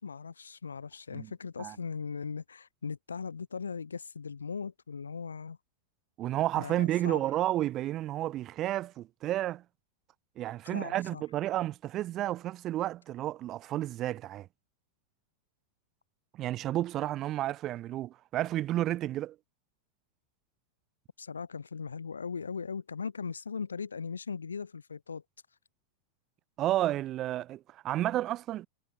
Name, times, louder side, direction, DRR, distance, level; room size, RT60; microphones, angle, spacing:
voice 1, 0.0-5.6 6.6-7.2 10.6-11.2 21.2-25.2, left 5 dB, 75° left, 4.8 m, -39 dB
voice 2, 6.2-9.6 10.4-14.5 16.3-19.4 26.6-28.7, right 14 dB, 35° right, 2.3 m, -31 dB
figure-of-eight pair, 90°, 0 cm